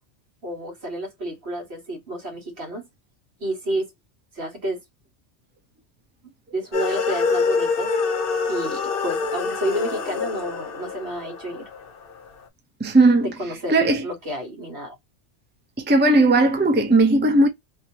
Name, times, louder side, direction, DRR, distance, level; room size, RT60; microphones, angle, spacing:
voice 1, 0.4-2.9 3.4-3.9 4.3-4.8 6.5-7.9 8.5-11.7 13.2-15.0, right 1 dB, 65° right, 1.8 m, -30 dB
sound 1, 6.7-12.2, left 4 dB, 55° left, 0.9 m, -26 dB
voice 2, 12.8-14.1 15.8-17.5, right 2 dB, 10° right, 0.6 m, -17 dB
3.5 x 2.8 x 2.8 m
omnidirectional pair, 1.2 m